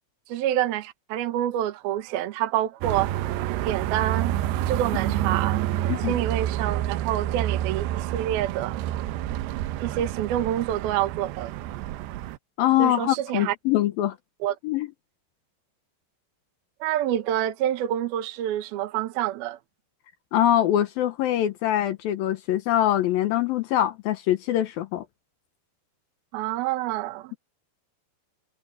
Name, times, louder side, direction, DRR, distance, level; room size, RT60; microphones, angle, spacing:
voice 1, 0.3-3.1 3.6-4.3 4.7-5.7 6.1-8.8 9.8-11.5 12.8-13.5 14.4-14.5 16.8-19.6 26.3-27.3, right 12 dB, 70° right, 3.0 m, -27 dB
sound 1, 2.8-12.4, right 13 dB, 85° right, 2.9 m, -28 dB
voice 2, 12.6-14.2 14.6-14.9 20.3-25.1, left 12 dB, 70° left, 2.5 m, -23 dB
omnidirectional pair, 4.7 m